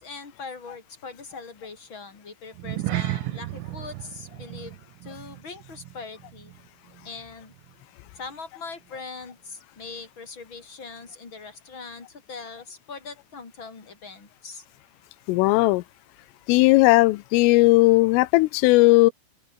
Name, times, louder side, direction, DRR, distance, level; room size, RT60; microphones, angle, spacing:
voice 1, 0.0-6.5 7.0-7.5 8.1-14.6, left 4 dB, 25° left, 4.5 m, -41 dB
sound 1, 2.5-7.2 7.4-7.7 8.2-8.3, right 16 dB, 90° right, 3.9 m, -34 dB
voice 2, 15.3-15.8 16.5-19.1, left 21 dB, 90° left, 3.3 m, -17 dB
open air
omnidirectional pair, 5.8 m